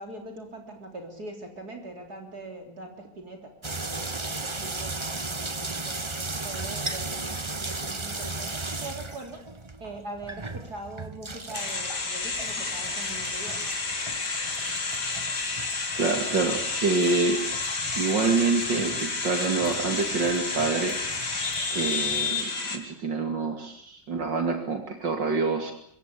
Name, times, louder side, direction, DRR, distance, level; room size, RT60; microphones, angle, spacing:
voice 1, 0.0-6.0 6.4-9.4 9.8-13.7, right 2 dB, 60° right, 4 dB, 4.1 m, -42 dB
sound 1, 3.6-22.4, right 3 dB, 20° right, 1.1 m, -37 dB
sound 2, 11.5-22.8, left 3 dB, 70° left, 3.9 m, -30 dB
voice 2, 16.0-17.4 18.0-21.0 21.7-25.7, right 4 dB, 80° right, 5 dB, 3.3 m, -26 dB
26.0 x 23.0 x 8.6 m, 0.64 s
omnidirectional pair, 1.9 m